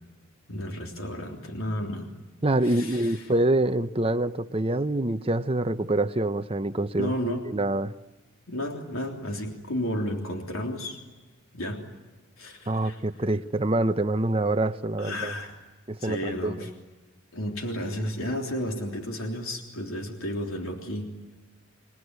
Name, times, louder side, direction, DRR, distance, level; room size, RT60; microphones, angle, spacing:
voice 1, 0.5-2.1 2.6-3.3 7.0-7.4 8.5-11.0 11.5-11.8 12.4-13.0 15.0-15.5 16.0-16.7 17.3-21.1, left 1 dB, 80° left, 2 dB, 3.4 m, -32 dB
voice 2, 2.4-7.9 12.7-15.3 15.9-16.7, right 1 dB, 25° right, 9 dB, 0.8 m, -26 dB
28.0 x 20.5 x 9.6 m, 1.2 s
head